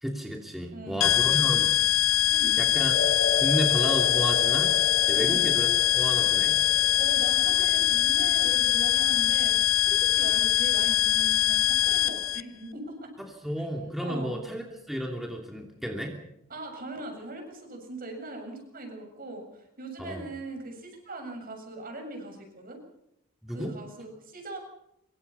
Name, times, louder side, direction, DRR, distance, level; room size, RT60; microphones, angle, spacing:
voice 1, 0.0-1.9 2.6-2.9 3.3-4.7 5.1-5.7 6.0-6.6 13.4-16.2 20.0-20.2 23.4-23.7, equal, ahead, 1 dB, 3.0 m, -32 dB
voice 2, 0.7-1.3 2.3-2.6 5.1-5.6 7.0-13.1 13.6-13.7 14.0-14.3 16.5-22.8 23.5-24.6, right 2 dB, 45° right, 4 dB, 7.2 m, -40 dB
sound 1, 1.0-12.4, left 13 dB, 85° left, 0.8 m, -23 dB
sound 2, 2.9-11.2, left 2 dB, 55° left, 3.9 m, -36 dB
25.5 x 24.0 x 5.6 m, 0.79 s
head